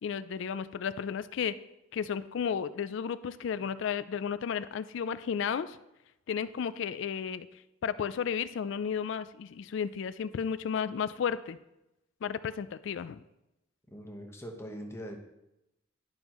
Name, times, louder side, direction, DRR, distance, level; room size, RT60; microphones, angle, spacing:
voice 1, 0.0-1.5 1.9-5.8 6.3-7.5 7.8-11.6 12.2-13.2, left 7 dB, 65° left, 15 dB, 0.3 m, -33 dB
voice 2, 13.9-15.2, equal, 15° left, 2 dB, 1.0 m, -42 dB
11.5 x 5.4 x 3.0 m, 0.89 s
head